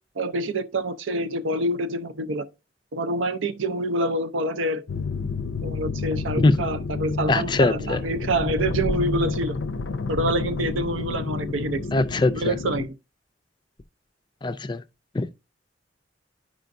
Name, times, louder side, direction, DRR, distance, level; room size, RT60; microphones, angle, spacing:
voice 1, 0.2-2.5 2.9-4.8 5.6-9.6 10.1-11.9 12.3-12.9, right 1 dB, 85° right, 0.6 m, -26 dB
sound 1, 4.9-12.9, left 4 dB, 80° left, 0.5 m, -30 dB
voice 2, 7.3-8.0 11.9-12.5 14.4-14.8 15.1-15.3, left 2 dB, 25° left, 0.4 m, -21 dB
10.5 x 4.9 x 2.6 m
head